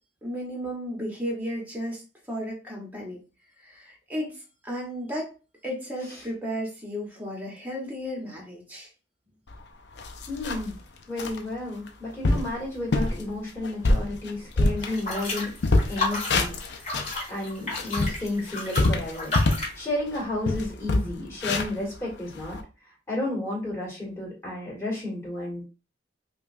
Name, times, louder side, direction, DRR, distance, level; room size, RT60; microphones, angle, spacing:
voice 1, 0.2-3.2 3.6-5.3 5.6-8.9, equal, 10° right, -2 dB, 1.1 m, -34 dB
sound 1, 9.5-9.6 10.0-10.8 11.2-11.4 11.9-12.0 12.2-12.5 12.9-13.2 13.6-15.3 15.6-17.2 17.6-19.7 20.1-20.2 20.4-22.6, left 2 dB, 60° left, 0.5 m, -25 dB
voice 2, 10.3-10.8 11.1-15.5 15.9-16.8 17.3-19.4 19.8-22.6 23.1-25.6, left 2 dB, 15° left, -6 dB, 2.0 m, -32 dB
sound 2, 14.8-19.8, left 2 dB, 35° left, 1.8 m, -32 dB
5.2 x 2.4 x 2.6 m, 0.33 s
head